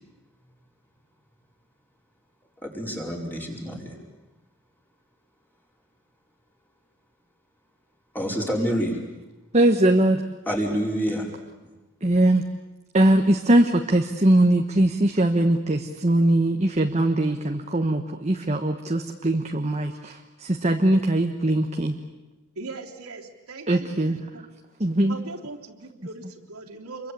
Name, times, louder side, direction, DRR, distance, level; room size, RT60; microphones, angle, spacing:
voice 1, 2.6-3.9 8.1-9.0 10.5-11.3 11.6-11.7, equal, 10° left, -1 dB, 4.8 m, -27 dB
voice 2, 9.5-10.3 12.0-12.4 12.9-22.0 23.7-24.2 24.8-25.2, right 1 dB, 30° right, 4 dB, 1.3 m, -21 dB
voice 3, 22.5-24.4 25.1-27.1, right 3 dB, 85° right, -1 dB, 3.4 m, -40 dB
28.0 x 23.5 x 8.5 m, 1.1 s
head